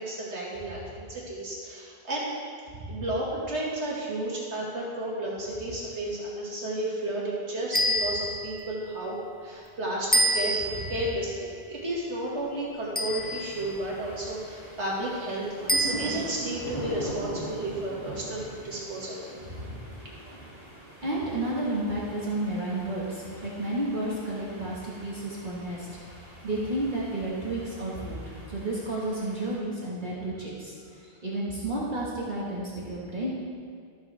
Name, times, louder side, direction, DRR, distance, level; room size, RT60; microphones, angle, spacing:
voice 1, 0.0-2.3 2.9-19.2, right 1 dB, 85° right, -5 dB, 2.1 m, -32 dB
voice 2, 2.7-3.0 10.8-10.9 19.5-19.6 21.0-25.9 26.4-30.7 31.2-33.3, right 1 dB, 45° right, -7 dB, 1.6 m, -31 dB
sound 1, 7.7-8.6 10.1-11.0 13.0-13.7 15.7-16.4, right 1 dB, 15° left, 0.4 m, -27 dB
sound 2, 13.0-29.6, right 1 dB, 35° left, 2.3 m, -42 dB
13.5 x 7.3 x 3.3 m, 2.1 s
omnidirectional pair, 1.1 m